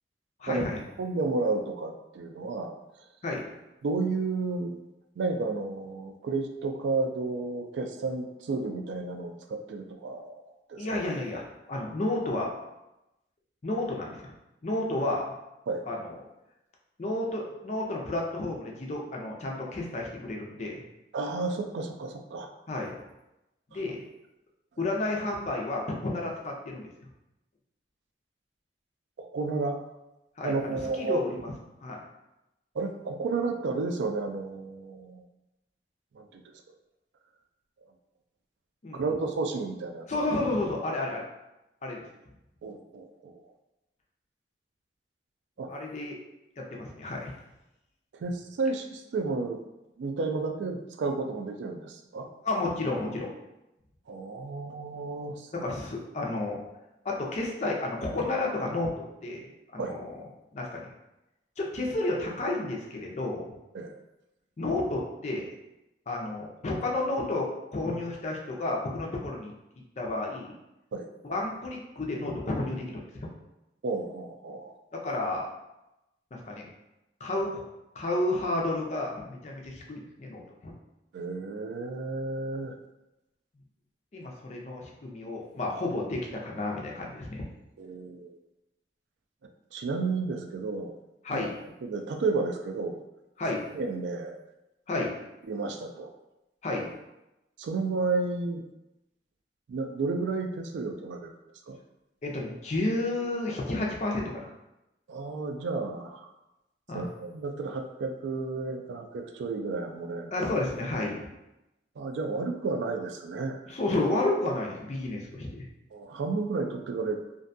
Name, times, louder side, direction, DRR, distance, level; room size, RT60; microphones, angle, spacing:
voice 1, 0.4-0.8 3.2-3.5 10.8-12.5 13.6-14.3 14.6-15.3 15.9-16.1 17.0-20.8 22.7-22.9 23.7-24.0 24.8-26.9 30.4-31.5 31.8-32.0 38.8-39.0 40.1-41.2 41.8-42.0 45.7-46.2 46.6-47.3 52.4-53.3 55.5-56.6 57.0-58.9 59.2-60.2 60.5-60.9 61.6-63.5 64.6-65.5 66.1-69.5 70.0-70.6 71.2-73.3 75.0-75.5 76.5-76.6 77.2-77.6 78.0-80.7 84.1-87.5 91.2-91.6 93.4-93.7 94.9-95.1 96.6-96.9 102.2-104.5 106.9-107.1 110.3-111.3 113.7-115.7, left 2 dB, 40° left, -1 dB, 0.4 m, -31 dB
voice 2, 1.0-2.7 3.8-4.8 5.2-10.4 10.7-10.9 15.7-15.8 21.1-22.5 23.7-23.8 29.2-29.8 30.4-31.2 32.7-35.2 36.1-36.4 38.9-40.1 42.6-43.4 45.6-45.7 48.1-49.6 50.0-52.3 54.1-55.7 59.8-60.0 63.7-64.0 70.9-71.1 73.8-74.7 81.1-82.8 87.8-88.4 89.7-90.9 91.3-91.5 91.8-93.0 93.7-94.4 95.5-96.1 97.6-98.7 99.7-101.3 101.7-101.8 105.1-106.3 106.9-110.3 112.0-113.6 115.9-117.2, right 3 dB, 90° right, 5 dB, 0.3 m, -32 dB
2.5 x 2.2 x 2.5 m, 0.93 s
head